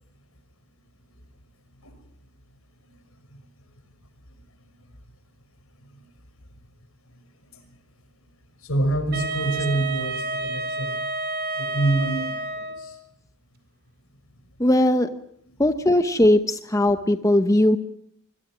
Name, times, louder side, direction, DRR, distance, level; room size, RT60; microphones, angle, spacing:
voice 1, 8.6-11.0 11.6-13.0, right 1 dB, 70° left, 9 dB, 5.7 m, -27 dB
Wind instrument woodwind instrument, 9.1-13.0, right 3 dB, 45° right, 4.1 m, -30 dB
voice 2, 14.6-15.1 15.6-17.8, left 1 dB, 15° left, 8 dB, 0.9 m, -19 dB
25.5 x 22.0 x 6.2 m, 0.69 s
head